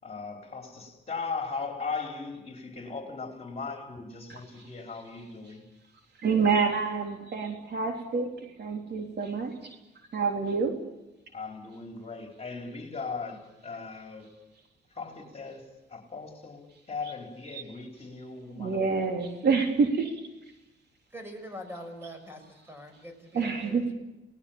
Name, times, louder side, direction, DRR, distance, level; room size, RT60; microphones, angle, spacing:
voice 1, 0.0-5.6 11.3-14.3 15.0-15.6 15.9-18.8, left 4 dB, 30° left, 4.4 m, -38 dB
voice 2, 6.2-8.3 8.6-9.8 10.1-10.8 17.5-17.6 18.5-20.1 23.3-23.8, right 5 dB, 55° right, 3.6 m, -27 dB
voice 3, 21.1-23.9, equal, 10° right, 6.3 m, -43 dB
29.0 x 19.0 x 7.3 m
cardioid pair, 90°, 20 cm